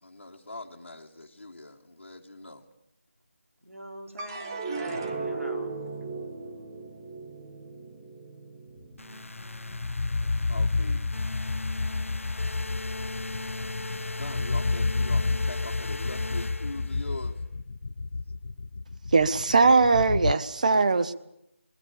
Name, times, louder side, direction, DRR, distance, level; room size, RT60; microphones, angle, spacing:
voice 1, 0.0-2.6 10.2-11.2 13.9-17.4, left 2 dB, 60° left, 2.1 m, -42 dB
voice 2, 3.6-5.8, equal, 85° right, 4.6 m, -43 dB
sound 1, 4.2-10.6 11.1-11.7, right 3 dB, 20° right, 1.4 m, -37 dB
sound 2, 9.0-17.3, left 2 dB, 75° left, 0.8 m, -38 dB
sound 3, 9.3-20.3, left 3 dB, 45° left, 0.8 m, -30 dB
voice 3, 19.1-21.1, right 4 dB, 35° right, 0.8 m, -20 dB
25.5 x 20.0 x 7.0 m
figure-of-eight pair, 165°, 7 cm